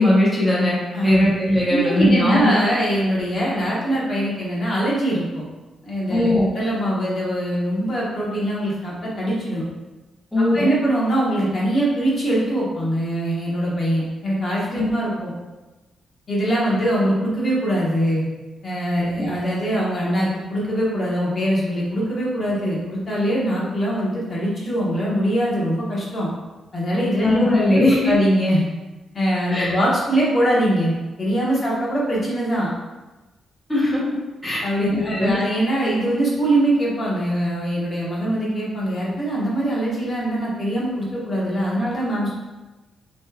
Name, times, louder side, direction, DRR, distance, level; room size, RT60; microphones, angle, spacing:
voice 1, 0.0-0.8 1.0-2.5 6.1-6.5 10.3-10.5 14.7-14.8 19.0-19.1 27.2-28.1 29.5-29.7 33.7-34.0 34.4-35.4, left 1 dB, 5° left, -8 dB, 1.0 m, -19 dB
voice 2, 0.9-1.3 1.7-5.4 5.8-9.6 10.5-15.3 16.3-18.2 18.6-26.3 26.7-27.4 27.7-28.6 29.1-30.9 31.2-32.7 34.6-42.3, right 1 dB, 35° left, -5 dB, 1.2 m, -22 dB
6.2 x 3.2 x 2.4 m, 1.1 s
cardioid pair, 145°, 0 cm